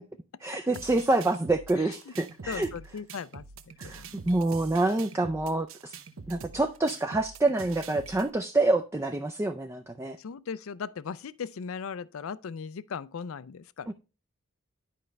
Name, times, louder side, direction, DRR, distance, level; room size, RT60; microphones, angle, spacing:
voice 1, 0.4-2.7 3.8-5.9 6.3-10.2 13.9-14.0, right 2 dB, 15° right, 0.4 m, -27 dB
sound 1, 0.7-8.3, right 5 dB, 75° right, 0.7 m, -46 dB
voice 2, 2.5-3.4 3.8-4.2 10.2-13.9, left 6 dB, 85° left, 0.4 m, -38 dB
10.0 x 5.2 x 3.2 m
head